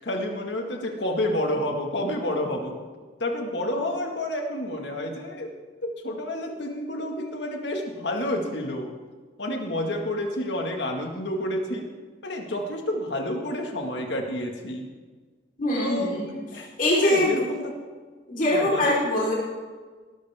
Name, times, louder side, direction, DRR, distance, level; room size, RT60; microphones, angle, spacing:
voice 1, 0.0-2.8 3.2-5.5 5.8-8.9 9.4-11.9 12.2-14.9 15.8-16.7 17.0-17.7 18.5-18.9, left 1 dB, 70° left, 2 dB, 2.0 m, -29 dB
voice 2, 15.6-16.4 16.8-17.5 18.3-19.3, left 1 dB, 50° left, -6 dB, 4.2 m, -23 dB
19.0 x 13.0 x 3.7 m, 1.4 s
head